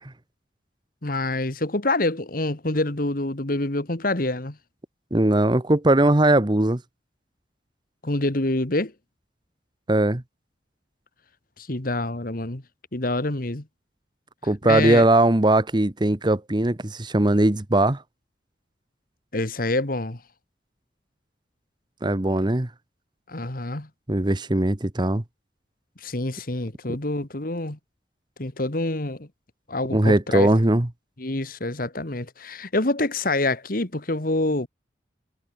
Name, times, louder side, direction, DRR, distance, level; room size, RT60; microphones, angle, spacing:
voice 1, 1.0-4.6 8.0-8.9 11.6-12.6 12.9-13.6 14.7-15.0 19.3-20.2 23.3-23.9 26.0-27.8 28.4-29.3 29.7-30.5 31.2-34.7, left 2 dB, 50° left, 1.9 m, -26 dB
voice 2, 5.1-6.8 9.9-10.2 14.4-18.0 22.0-22.7 24.1-25.2 29.9-30.9, right 1 dB, 25° right, 1.0 m, -20 dB
head